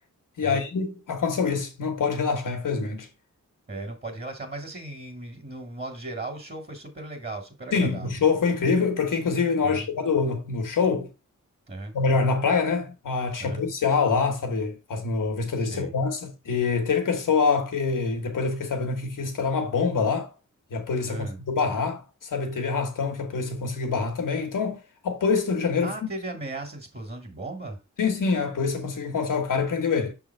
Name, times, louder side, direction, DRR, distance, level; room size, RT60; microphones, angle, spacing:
voice 1, 0.4-3.1 7.7-11.1 11.9-20.3 20.7-25.9 28.0-30.1, left 5 dB, 90° left, 1.4 m, -25 dB
voice 2, 3.7-8.1 9.6-9.9 11.7-12.0 13.4-13.7 15.6-15.9 21.1-21.4 25.8-27.8, right 2 dB, 35° right, 1.8 m, -36 dB
6.3 x 3.6 x 4.5 m
cardioid pair, 75°, 31 cm